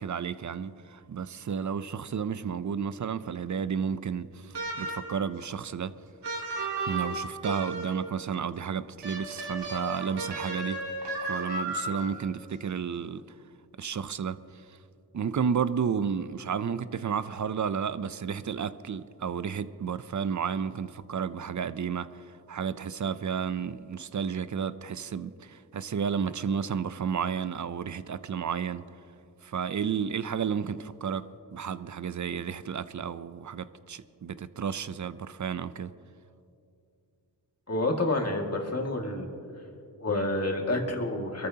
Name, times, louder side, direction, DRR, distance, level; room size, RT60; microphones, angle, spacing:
voice 1, 0.0-5.9 6.9-10.8 11.3-13.2 13.8-14.4 15.1-22.2 22.5-28.8 29.4-35.9, right 7 dB, 50° right, 0.5 m, -32 dB
sound 1, 4.5-5.2 6.2-8.1 9.0-12.2, right 2 dB, 85° right, 2.0 m, -34 dB
voice 2, 37.7-39.3 40.0-41.5, left 2 dB, 40° left, 2.1 m, -28 dB
23.5 x 14.0 x 2.9 m
wide cardioid pair, 70°, 40 cm